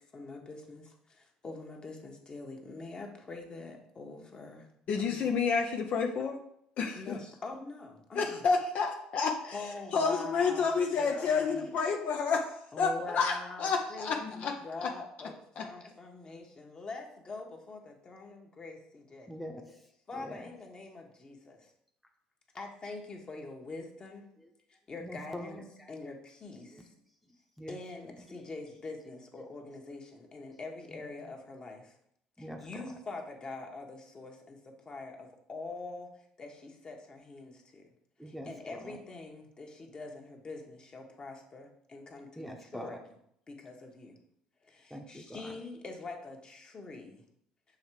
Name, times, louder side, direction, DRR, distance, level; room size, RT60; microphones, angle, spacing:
voice 1, 0.1-4.7 5.0-5.4 6.9-8.4 9.5-10.7 11.0-11.6 12.7-19.3 20.1-21.7 22.5-24.3 24.7-25.6 25.9-26.9 27.7-32.0 32.4-37.9 38.3-43.0 43.5-44.2 44.6-47.2, left 3 dB, 35° left, 1 dB, 1.3 m, -44 dB
voice 2, 4.9-6.4 6.8-7.2 8.1-14.5 14.8-14.9 15.6-15.7, left 5 dB, 55° left, 3 dB, 0.7 m, -30 dB
voice 3, 19.3-20.5 24.4-24.5 25.0-26.0 26.6-26.9 27.2-27.8 28.2-28.5 29.1-29.5 30.4-30.5 30.9-31.1 32.4-32.9 38.2-39.0 42.4-43.0 44.9-45.6, equal, ahead, 2 dB, 0.9 m, -45 dB
6.3 x 3.3 x 4.7 m, 0.72 s
supercardioid pair, 80°, 3 cm